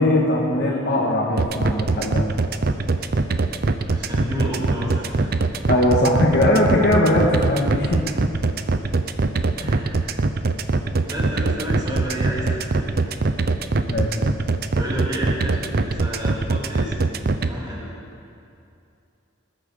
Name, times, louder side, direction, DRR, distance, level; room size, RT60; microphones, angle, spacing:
voice 1, 0.0-2.2 5.7-8.3 9.6-9.7 13.9-14.1, left 1 dB, 60° left, -3 dB, 1.7 m, -20 dB
sound 1, 1.4-17.5, right 3 dB, 55° right, 0.7 m, -22 dB
voice 2, 3.8-5.3 9.6-10.0 11.1-12.9 14.7-17.1 17.4-17.9, equal, 20° right, -5 dB, 3.3 m, -31 dB
19.5 x 10.5 x 7.0 m, 2.6 s
head